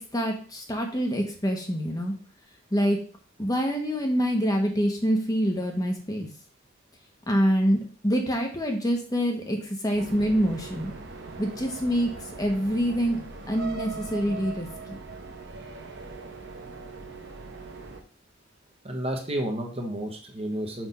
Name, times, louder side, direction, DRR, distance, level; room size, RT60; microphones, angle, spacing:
voice 1, 0.0-2.1 2.7-3.0 3.4-6.3 7.3-10.9 11.4-12.1 12.4-13.2 13.5-15.0, equal, 20° left, 2 dB, 1.1 m, -26 dB
sound 1, 9.9-18.0, right 4 dB, 60° right, 1.0 m, -40 dB
voice 2, 18.8-20.9, right 1 dB, 30° right, 2 dB, 1.1 m, -31 dB
6.0 x 3.5 x 5.5 m, 0.41 s
head